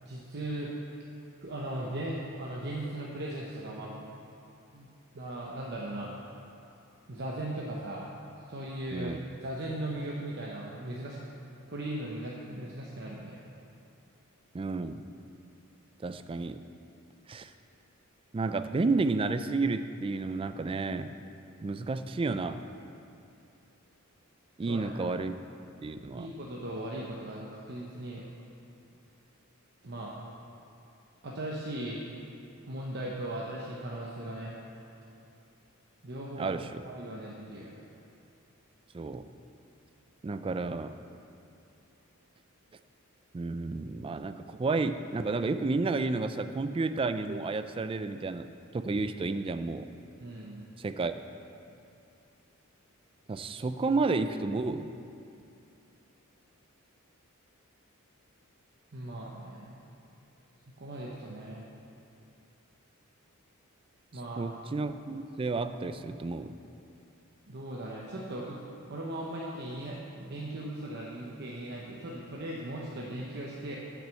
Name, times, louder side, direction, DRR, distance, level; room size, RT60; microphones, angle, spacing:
voice 1, 0.1-0.7 1.4-4.0 4.7-4.9 5.1-6.1 7.1-8.1 8.5-9.1 9.4-11.2 11.7-13.4 24.7-25.1 26.2-28.3 29.8-30.2 31.2-32.0 32.7-34.6 36.0-36.6 36.9-37.9 50.2-50.6 58.9-59.7 60.8-61.6 64.1-64.4 67.5-68.6 68.9-73.8, right 1 dB, 50° right, -4 dB, 0.9 m, -38 dB
voice 2, 8.9-9.2 14.5-15.1 16.0-16.6 17.3-17.5 18.3-21.1 21.6-22.6 24.6-25.4 25.8-26.3 36.4-36.8 38.9-39.2 40.2-40.9 43.3-48.5 48.7-49.9 50.8-51.1 53.3-54.9 64.1-66.5, right 3 dB, 25° right, 10 dB, 0.3 m, -31 dB
8.6 x 6.1 x 7.6 m, 2.7 s
head